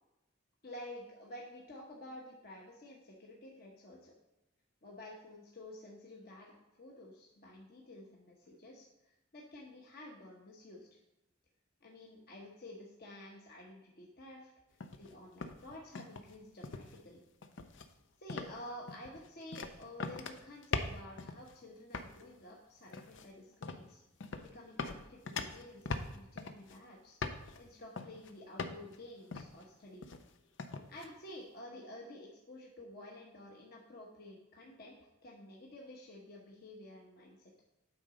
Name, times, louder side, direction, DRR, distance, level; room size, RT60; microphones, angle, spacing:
voice 1, 0.6-4.1 4.8-10.9 11.8-14.5 15.0-17.2 18.2-24.0 24.4-27.2 27.6-30.1 30.9-37.5, left 1 dB, 55° left, -2 dB, 1.1 m, -51 dB
sound 1, 14.8-15.1 15.4-16.3 16.6-17.0 17.4-17.9 18.3-18.6 18.9-21.5 21.9-22.2 22.9-23.3 23.6-23.9 24.2-24.5 24.8-26.8 27.2-27.6 28.0-28.3 28.6-29.0 29.3-29.6 30.0-30.3 30.6-31.1, left 4 dB, 70° left, 0.6 m, -41 dB
8.8 x 3.8 x 5.1 m, 0.92 s
head